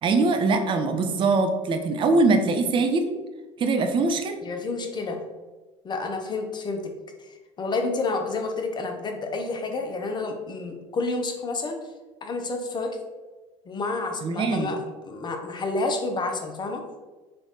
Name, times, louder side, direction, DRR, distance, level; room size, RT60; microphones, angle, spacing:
voice 1, 0.0-3.1 3.6-4.4 14.2-14.7, right 3 dB, 30° right, 6 dB, 0.4 m, -22 dB
voice 2, 4.4-5.2 5.8-6.9 7.2-11.8 12.2-13.0 13.7-16.8, left 3 dB, 25° left, 3 dB, 0.7 m, -29 dB
3.3 x 2.5 x 3.9 m, 1.2 s
hypercardioid pair, 65°, 16 cm